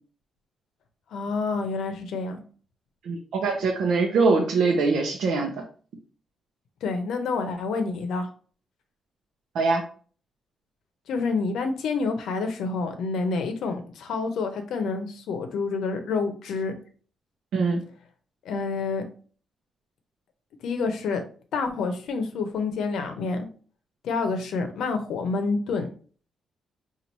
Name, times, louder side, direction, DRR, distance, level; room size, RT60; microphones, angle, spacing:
voice 1, 1.1-2.4 6.8-8.3 11.1-16.7 18.4-19.0 20.6-21.2 21.5-23.5 24.0-25.9, left 4 dB, 75° left, 6 dB, 0.7 m, -28 dB
voice 2, 3.0-5.5 9.5-9.8 17.5-17.8, right 4 dB, 65° right, 0 dB, 0.6 m, -23 dB
5.3 x 2.4 x 2.9 m, 0.42 s
wide cardioid pair, 180°, 0 cm